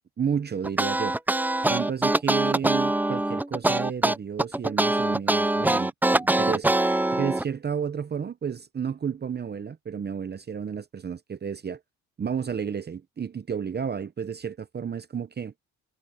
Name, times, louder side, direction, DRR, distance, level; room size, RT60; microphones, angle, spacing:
voice 1, 0.2-1.2 1.7-5.9 6.2-11.8 12.2-15.7, right 7 dB, 35° right, 0.9 m, -32 dB
sound 1, 0.6-7.4, right 1 dB, 5° right, 0.5 m, -23 dB
cardioid pair, 90°, 30 cm